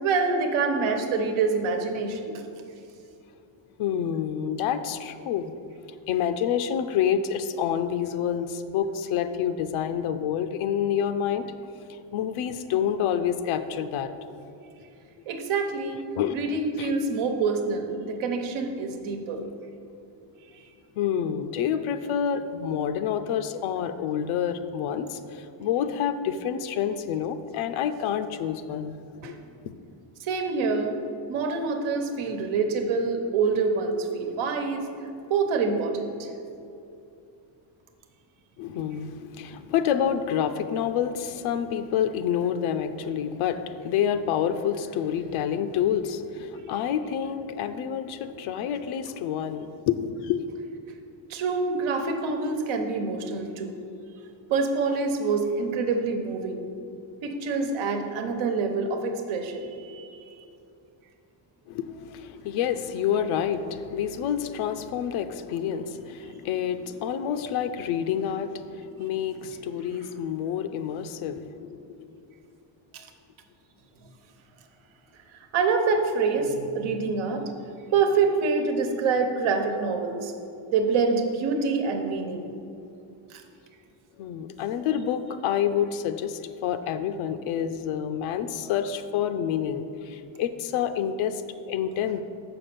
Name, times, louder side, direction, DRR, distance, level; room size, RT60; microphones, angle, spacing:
voice 1, 0.0-2.4 15.3-16.0 16.3-19.4 29.2-29.3 30.2-31.0 31.3-34.9 35.3-36.3 51.3-53.7 54.5-56.7 57.2-60.1 75.5-77.5 77.9-80.3 80.7-82.4 83.3-83.4, right 4 dB, 80° right, 5 dB, 1.1 m, -26 dB
voice 2, 3.8-5.5 5.9-11.4 11.9-14.1 16.1-16.4 16.8-16.9 21.0-29.0 29.2-29.7 38.6-50.5 61.7-72.3 84.2-92.2, left 9 dB, 85° left, 9 dB, 0.6 m, -28 dB
7.1 x 5.8 x 6.8 m, 2.6 s
cardioid pair, 165°, 47 cm